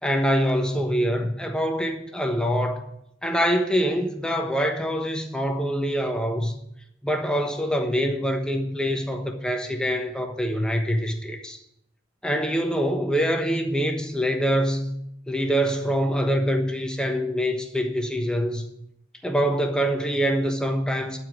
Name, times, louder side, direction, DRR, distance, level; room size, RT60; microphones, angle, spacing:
voice 1, 0.0-2.8 3.2-6.5 7.0-11.6 12.2-14.9 15.3-18.6 19.2-21.2, equal, 5° left, 1.1 m, -25 dB
11.5 x 5.0 x 7.8 m
head